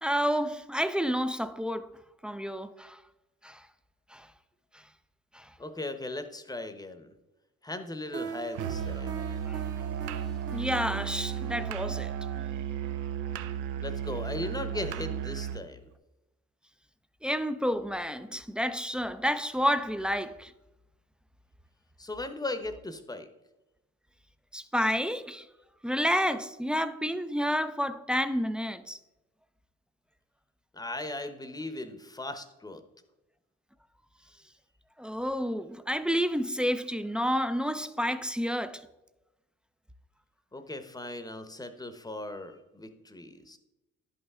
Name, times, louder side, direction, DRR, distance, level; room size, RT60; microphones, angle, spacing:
voice 1, 0.0-1.9 2.2-3.0 3.4-3.6 4.1-4.3 5.3-5.5 9.5-9.6 10.5-12.1 17.2-20.5 24.5-25.5 25.8-29.0 35.0-38.9, equal, 5° right, 0.4 m, -30 dB
voice 2, 5.6-7.1 7.6-9.2 13.8-15.8 22.0-23.3 30.7-32.8 40.5-43.6, left 2 dB, 15° left, 0.8 m, -38 dB
sound 1, 8.1-14.9, right 6 dB, 50° right, 1.1 m, -44 dB
Musical instrument, 8.5-15.7, right 9 dB, 90° right, 0.5 m, -34 dB
10.5 x 5.6 x 3.6 m
cardioid pair, 90°, 30 cm